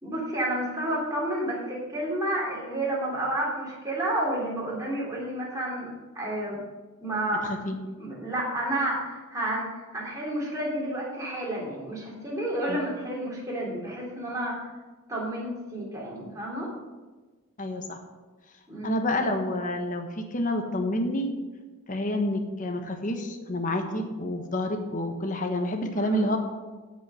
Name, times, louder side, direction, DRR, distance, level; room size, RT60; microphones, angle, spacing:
voice 1, 0.0-5.9 6.1-6.6 7.0-7.6 8.0-14.7 15.1-16.7 18.7-19.0 25.9-26.3, right 1 dB, 15° right, -4 dB, 3.1 m, -30 dB
voice 2, 17.6-18.0 18.8-21.3 21.9-26.4, left 1 dB, 35° left, 4 dB, 1.3 m, -28 dB
16.0 x 5.5 x 5.7 m, 1.3 s
head